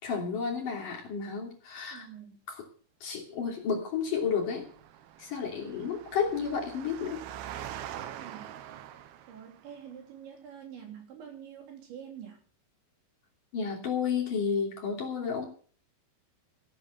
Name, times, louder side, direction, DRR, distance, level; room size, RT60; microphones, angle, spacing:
voice 1, 0.0-2.1 2.5-2.6 3.0-4.7 5.2-7.2 13.5-15.5, left 6 dB, 45° left, 0 dB, 4.1 m, -31 dB
voice 2, 1.9-2.4 8.1-8.5 9.3-12.4, right 8 dB, 65° right, 2 dB, 5.5 m, -46 dB
Engine, 4.1-9.7, right 11 dB, 85° right, 2.2 m, -44 dB
16.0 x 9.2 x 6.8 m, 0.44 s
omnidirectional pair, 5.6 m